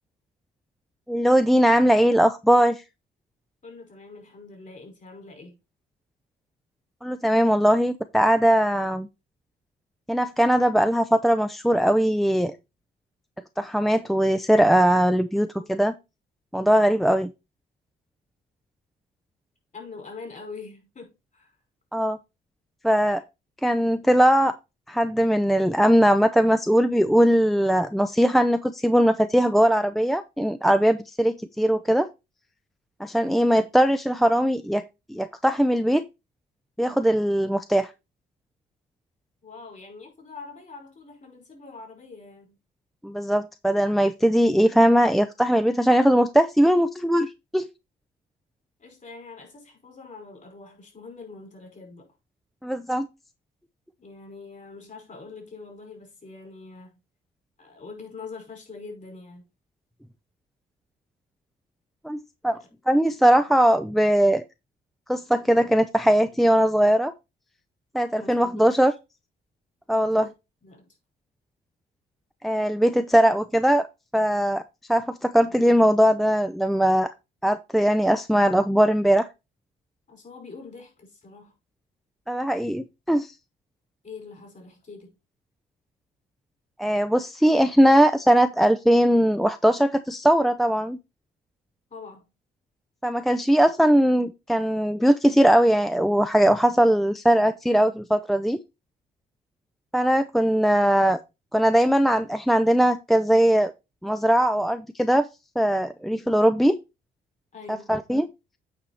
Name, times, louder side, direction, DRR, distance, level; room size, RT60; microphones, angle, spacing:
voice 1, 1.1-2.8 7.0-9.1 10.1-12.5 13.6-15.9 16.5-17.3 21.9-22.2 22.8-23.2 23.6-24.5 24.9-32.1 33.0-34.8 35.1-36.0 36.8-37.9 43.0-47.6 52.6-53.1 62.0-62.6 62.9-64.4 65.1-67.1 67.9-68.9 69.9-70.3 72.4-73.9 74.1-74.6 74.9-77.1 77.4-79.3 82.3-83.3 86.8-91.0 93.0-98.6 99.9-101.2 101.5-103.7 104.0-105.3 105.6-106.8 107.9-108.3, equal, ahead, 0.6 m, -20 dB
voice 2, 3.6-5.6 15.5-15.7 19.7-21.6 39.4-42.6 48.8-52.0 54.0-56.9 57.6-59.5 62.5-62.7 68.2-68.7 70.1-70.3 70.6-71.0 80.1-81.5 84.0-85.1 91.9-92.3 107.5-107.9, left 4 dB, 40° left, 5.2 m, -43 dB
8.7 x 4.9 x 4.2 m
cardioid pair, 90°, 20 cm